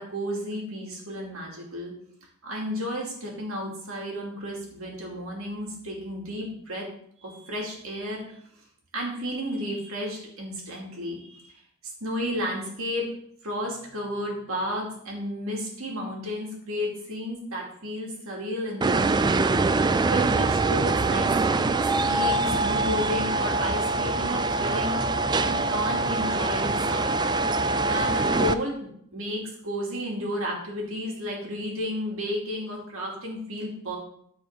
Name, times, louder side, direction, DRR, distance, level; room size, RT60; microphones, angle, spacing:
voice 1, 0.0-1.9 2.4-6.9 7.2-8.4 8.9-11.5 12.0-13.1 13.4-25.1 25.4-27.2 27.9-34.0, equal, 70° right, -2 dB, 2.8 m, -33 dB
sound 1, 18.8-28.5, right 3 dB, 20° right, 0.4 m, -24 dB
14.0 x 5.0 x 3.8 m, 0.69 s
head